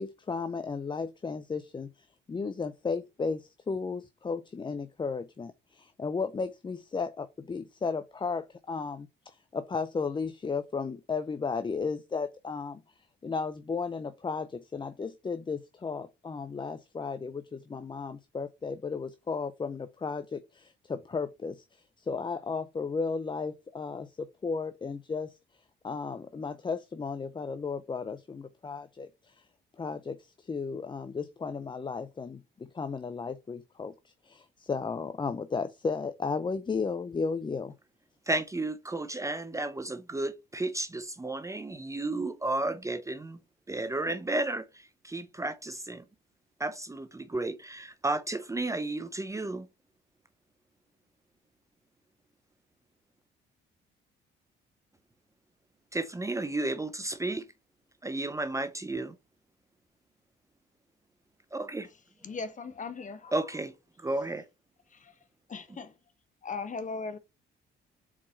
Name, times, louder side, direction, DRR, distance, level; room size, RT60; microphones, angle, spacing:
voice 1, 0.0-29.5 29.8-37.7, left 4 dB, 25° left, 0.5 m, -34 dB
voice 2, 38.3-43.4 43.7-46.0 46.6-49.7 55.9-57.4 58.0-59.2 61.5-61.9 63.3-63.7 64.0-64.5, right 2 dB, 15° right, 0.6 m, -33 dB
voice 3, 62.2-63.4 64.9-65.2 65.5-66.0 66.4-67.2, left 4 dB, 40° left, 1.3 m, -38 dB
4.9 x 4.3 x 5.5 m
cardioid pair, 90°, 20 cm